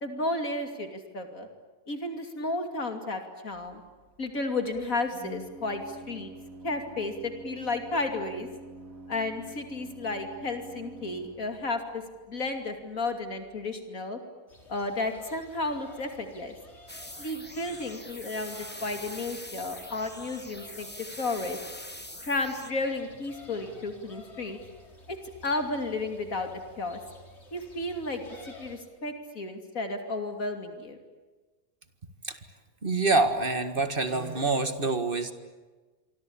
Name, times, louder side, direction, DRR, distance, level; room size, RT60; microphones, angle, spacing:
voice 1, 0.0-1.5 1.9-3.8 4.2-6.3 6.6-8.5 9.1-14.2 14.7-16.5 17.2-21.6 22.2-24.6 25.1-25.2 25.4-26.5 26.8-27.0 27.5-31.0, left 2 dB, 65° left, 5 dB, 3.1 m, -33 dB
Organ, 3.5-13.7, right 2 dB, 65° right, 3.6 m, -48 dB
sound 1, 14.5-28.8, left 2 dB, 45° left, 4.5 m, -52 dB
sound 2, 16.9-22.7, left 1 dB, 5° left, 1.4 m, -43 dB
voice 2, 32.8-35.3, right 3 dB, 35° right, 8 dB, 2.0 m, -26 dB
27.0 x 24.0 x 8.8 m, 1.3 s
omnidirectional pair, 1.6 m